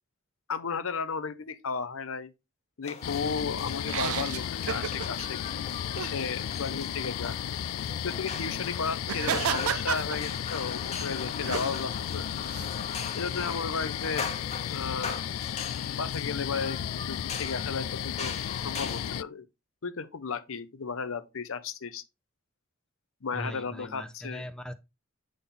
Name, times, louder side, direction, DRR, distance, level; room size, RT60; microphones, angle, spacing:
voice 1, 0.5-2.3 2.8-5.4 5.9-7.4 8.0-12.2 13.1-14.3 14.7-15.2 16.0-19.4 19.8-22.0 23.2-24.4, left 5 dB, 70° left, 0.7 m, -34 dB
sound 1, 2.8-19.2, left 5 dB, 30° left, 1.0 m, -40 dB
sound 2, 3.0-19.2, left 10 dB, 90° left, 0.3 m, -34 dB
sound 3, 3.8-5.3 6.0-6.2 9.0-10.6 11.0-11.7 12.5-12.7, right 9 dB, 80° right, 0.4 m, -32 dB
voice 2, 23.3-24.7, equal, 5° left, 0.5 m, -39 dB
8.4 x 3.8 x 3.8 m
head